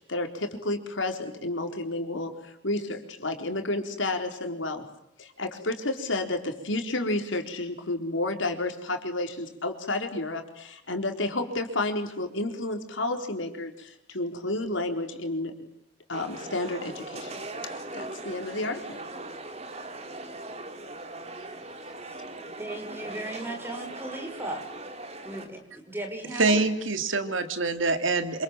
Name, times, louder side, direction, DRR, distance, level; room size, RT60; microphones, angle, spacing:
voice 1, 0.0-4.8 5.2-15.7 16.1-19.0, left 2 dB, 80° left, 4 dB, 4.2 m, -31 dB
sound 1, 16.1-25.5, right 2 dB, 35° right, 3.0 m, -40 dB
voice 2, 22.6-24.7 25.2-26.6, right 1 dB, 10° right, 3 dB, 6.3 m, -37 dB
voice 3, 26.4-28.4, right 3 dB, 90° right, 8 dB, 2.9 m, -25 dB
27.5 x 27.0 x 7.6 m, 0.77 s
head